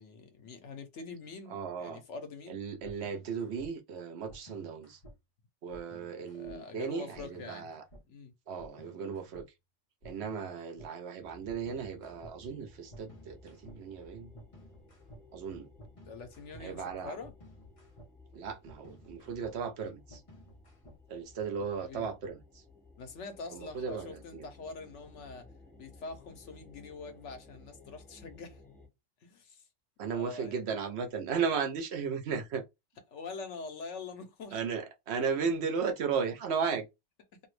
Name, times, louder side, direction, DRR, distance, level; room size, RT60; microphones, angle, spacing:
voice 1, 0.0-2.6 6.3-7.7 8.1-8.3 16.1-17.3 21.8-22.1 23.0-25.5 25.8-28.6 29.2-29.7 30.1-30.8 33.1-34.6 37.3-37.4, left 4 dB, 75° left, 1.1 m, -45 dB
voice 2, 1.5-2.0 2.5-5.0 5.6-7.9 8.5-9.5 10.0-14.3 15.3-15.7 16.6-17.2 18.3-20.2 21.1-22.6 23.5-24.5 30.0-32.6 34.5-36.9, right 6 dB, 65° right, 0.9 m, -35 dB
sound 1, 2.8-3.7 4.3-5.2 5.7-6.6 7.1-8.0 8.6-9.5 10.0-10.9 11.5-12.3 12.9-21.2, equal, 30° left, 0.9 m, -54 dB
sound 2, 11.2-28.9, left 3 dB, ahead, 1.1 m, -57 dB
2.9 x 2.6 x 3.1 m
omnidirectional pair, 1.2 m